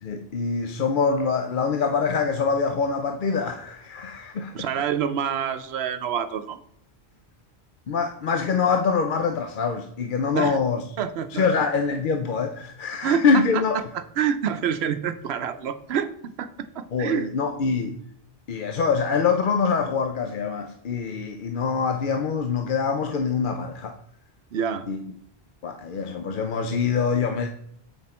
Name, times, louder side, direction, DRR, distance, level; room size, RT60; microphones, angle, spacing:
voice 1, 0.0-4.7 7.9-10.8 11.3-13.8 16.9-17.9 18.5-23.9 24.9-25.0 25.6-27.5, left 5 dB, 60° left, 0.7 m, -24 dB
voice 2, 4.5-6.6 10.3-10.6 11.0-11.4 13.0-17.3 24.5-24.9, right 8 dB, 80° right, 0.9 m, -27 dB
7.8 x 6.0 x 4.3 m
omnidirectional pair, 1.1 m